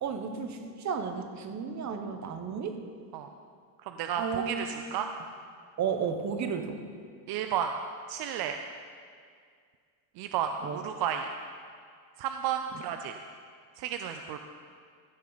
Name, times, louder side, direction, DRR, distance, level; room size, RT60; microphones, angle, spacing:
voice 1, 0.0-2.8 4.2-4.8 5.8-6.8 10.6-10.8, right 6 dB, 35° right, 7 dB, 1.1 m, -33 dB
voice 2, 3.8-5.1 7.3-7.7 8.1-8.6 10.2-11.3 12.2-13.1 13.8-14.4, right 9 dB, 50° right, 6 dB, 0.6 m, -32 dB
15.5 x 6.4 x 4.0 m, 2.1 s
supercardioid pair, 105°, 48 cm